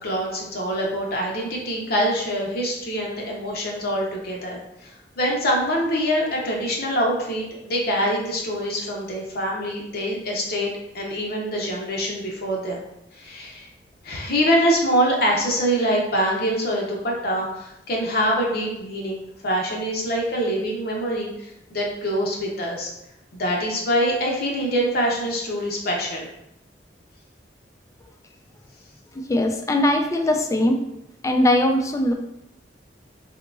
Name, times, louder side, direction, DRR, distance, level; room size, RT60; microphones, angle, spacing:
voice 1, 0.0-12.8 13.2-13.7 14.0-22.9 23.3-26.3, equal, 60° left, -1 dB, 0.8 m, -24 dB
voice 2, 29.3-30.8 31.2-32.1, left 1 dB, 20° left, 4 dB, 0.3 m, -20 dB
3.6 x 2.8 x 2.4 m, 0.83 s
head